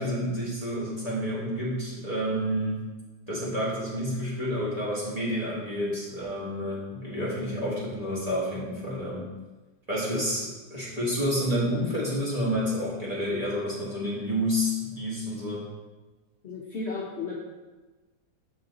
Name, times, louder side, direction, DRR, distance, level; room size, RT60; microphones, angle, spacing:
voice 1, 0.0-2.9 3.3-9.3 9.9-15.7, equal, 25° right, -8 dB, 1.6 m, -29 dB
voice 2, 16.4-17.4, left 4 dB, 55° left, -4 dB, 0.9 m, -34 dB
6.9 x 4.2 x 3.8 m, 1.2 s
omnidirectional pair, 1.7 m